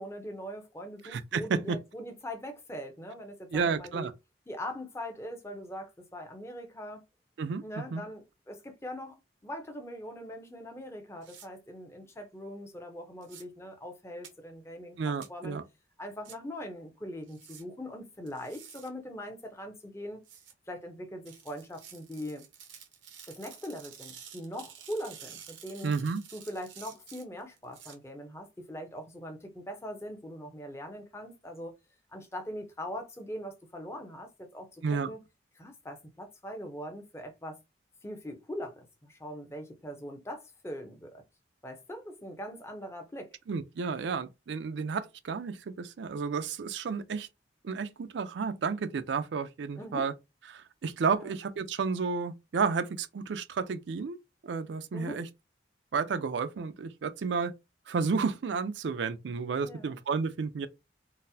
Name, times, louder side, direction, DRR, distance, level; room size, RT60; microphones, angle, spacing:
voice 1, 0.0-4.1 4.5-7.0 7.6-15.6 16.0-20.2 20.7-22.5 23.3-25.9 26.3-31.7 32.1-35.2 35.6-37.6 38.0-41.2 41.6-43.4 49.8-50.1 51.1-51.3 54.9-55.2 59.6-60.0, equal, 15° left, 0.6 m, -41 dB
voice 2, 1.0-1.8 3.5-4.1 7.4-8.0 15.0-15.6 25.8-26.2 34.8-35.1 43.5-47.3 47.6-50.1 50.5-54.2 54.4-55.3 55.9-57.5 57.9-60.7, right 5 dB, 70° right, 0.4 m, -31 dB
sound 1, 11.2-11.5 13.2-13.4 14.2-14.3 15.2-15.3 16.2-16.4 17.3-17.6 18.3-18.9 20.2-20.5 21.3-28.0, right 8 dB, 90° right, 0.7 m, -50 dB
3.9 x 2.1 x 2.6 m
head